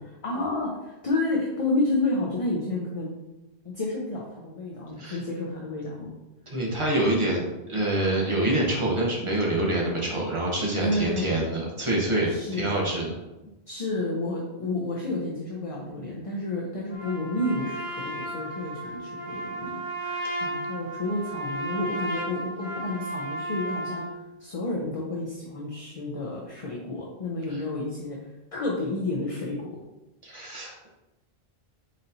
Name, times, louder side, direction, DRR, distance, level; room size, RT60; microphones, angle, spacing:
voice 1, 0.2-3.1 3.7-6.1 10.8-11.4 12.3-12.8 13.7-24.0 24.4-28.2 28.5-29.7, left 2 dB, 40° left, -2 dB, 0.6 m, -30 dB
voice 2, 6.5-13.2 27.5-27.6 30.2-30.9, right 1 dB, 30° right, -3 dB, 1.0 m, -26 dB
Trumpet, 16.9-24.1, right 1 dB, 75° right, 1.8 m, -34 dB
4.2 x 4.0 x 2.7 m, 1.0 s
omnidirectional pair, 1.1 m